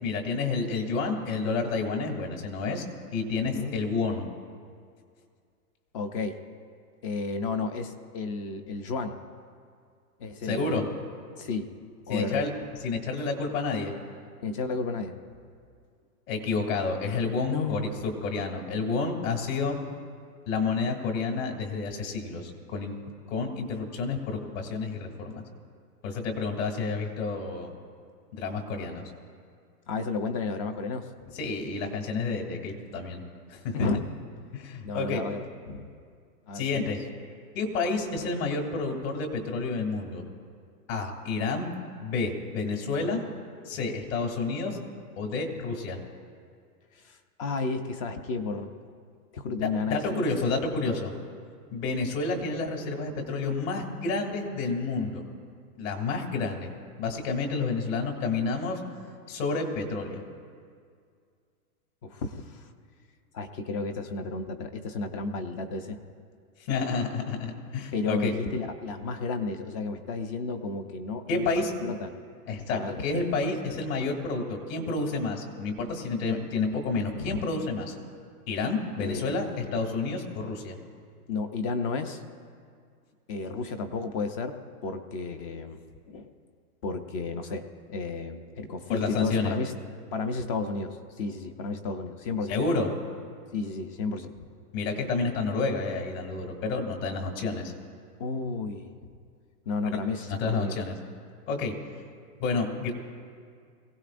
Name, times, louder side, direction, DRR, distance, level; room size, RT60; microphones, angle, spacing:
voice 1, 0.0-2.9 3.1-4.3 10.4-10.8 12.1-12.5 12.8-13.9 16.3-19.8 20.5-23.0 23.3-25.4 26.0-27.7 28.3-29.0 31.4-33.2 33.5-33.8 34.5-35.2 36.5-37.0 37.5-40.2 40.9-41.7 42.0-43.2 43.6-44.8 45.2-46.0 49.6-51.1 51.7-55.2 55.8-56.7 57.0-58.8 59.3-60.2 66.7-68.3 71.3-71.7 72.5-77.9 78.5-80.8 88.9-89.6 92.5-92.9 94.7-97.7 99.9-100.0 100.3-100.9 101.5-101.7 102.4-102.9, left 4 dB, 55° left, 3 dB, 2.7 m, -29 dB
voice 2, 3.4-3.8 5.9-6.4 7.0-9.2 10.2-10.9 11.4-11.7 12.1-12.4 14.4-15.2 17.5-17.9 29.9-31.1 33.7-34.1 34.8-35.9 36.5-36.9 47.0-48.7 49.3-50.2 62.0-62.7 63.3-66.0 67.9-71.5 71.8-72.1 72.7-73.0 77.1-77.4 79.0-79.4 81.3-82.2 83.3-84.6 84.8-85.8 86.1-86.3 86.8-89.7 90.1-92.6 93.5-94.3 98.2-98.9 99.7-100.8, left 4 dB, 20° left, 8 dB, 0.5 m, -32 dB
22.5 x 16.5 x 2.5 m, 2.1 s
hypercardioid pair, 140°, 47 cm